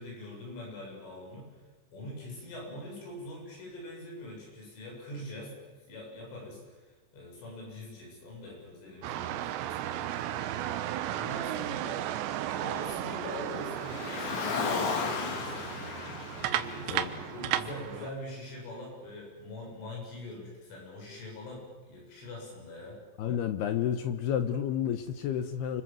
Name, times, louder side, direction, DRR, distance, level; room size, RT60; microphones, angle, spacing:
voice 1, 0.0-1.5 1.9-10.7 11.1-12.1 12.6-16.2 16.5-17.0 17.3-23.0, left 1 dB, 90° left, -2 dB, 10.5 m, -43 dB
sound 1, 9.0-18.1, right 12 dB, 75° right, 3.1 m, -35 dB
Car, 13.6-18.0, left 5 dB, 50° left, 2.9 m, -35 dB
voice 2, 23.2-25.8, left 9 dB, 70° left, 9 dB, 2.7 m, -30 dB
28.5 x 26.0 x 7.7 m, 1.3 s
omnidirectional pair, 5.5 m